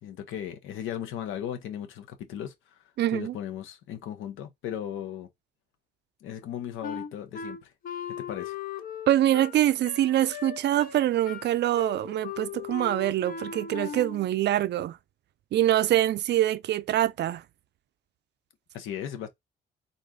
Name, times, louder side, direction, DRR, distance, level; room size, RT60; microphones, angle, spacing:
voice 1, 0.0-2.8 3.1-5.3 6.2-7.7 8.2-8.6 18.7-19.3, left 10 dB, 85° left, 0.9 m, -36 dB
voice 2, 3.0-3.3 9.1-15.0 15.5-17.4, right 13 dB, 60° right, 0.4 m, -24 dB
Wind instrument woodwind instrument, 6.8-14.3, left 7 dB, 45° left, 0.5 m, -38 dB
4.0 x 2.6 x 3.7 m
cardioid pair, 90°, 20 cm